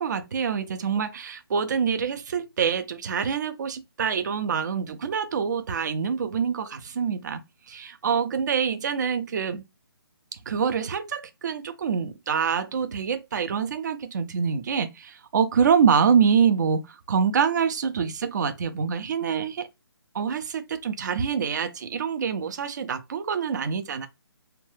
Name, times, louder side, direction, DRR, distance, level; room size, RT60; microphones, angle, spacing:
voice 1, 0.0-7.4 7.7-9.6 10.5-16.8 17.1-19.7 20.1-24.1, right 6 dB, 45° right, 0.4 m, -25 dB
2.8 x 2.2 x 3.1 m
figure-of-eight pair, 155°, 13 cm